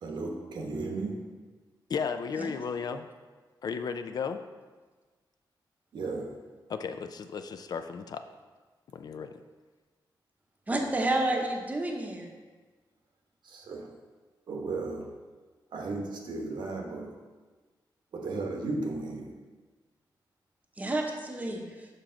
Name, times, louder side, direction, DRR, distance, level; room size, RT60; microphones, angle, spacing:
voice 1, 0.0-1.3 5.9-6.4 13.4-14.0 14.5-15.1 15.7-17.2 18.1-19.3, right 3 dB, 70° right, 1 dB, 1.0 m, -35 dB
voice 2, 1.9-3.1 3.6-4.4 6.7-8.2 8.9-9.3, left 6 dB, 55° left, 8 dB, 0.4 m, -34 dB
voice 3, 10.7-12.3 20.8-21.9, right 2 dB, 20° right, 2 dB, 0.8 m, -30 dB
6.7 x 5.9 x 3.8 m, 1.3 s
wide cardioid pair, 160°, 8 cm